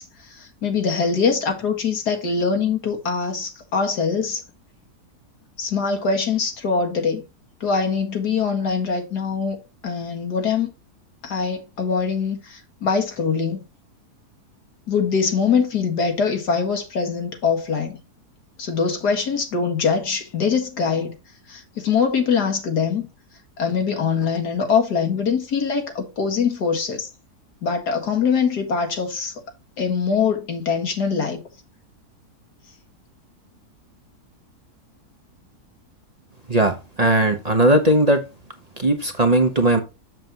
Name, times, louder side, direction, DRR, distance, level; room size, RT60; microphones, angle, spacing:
voice 1, 0.0-4.4 5.6-7.2 7.6-9.6 9.8-10.7 11.2-13.6 14.9-18.0 18.6-21.1 21.5-23.1 23.6-27.1 27.6-29.3 29.8-31.4, left 5 dB, 80° left, 2.4 m, -23 dB
voice 2, 36.5-38.2 38.8-39.8, right 1 dB, 25° right, 1.1 m, -18 dB
7.6 x 7.5 x 3.0 m
omnidirectional pair, 1.7 m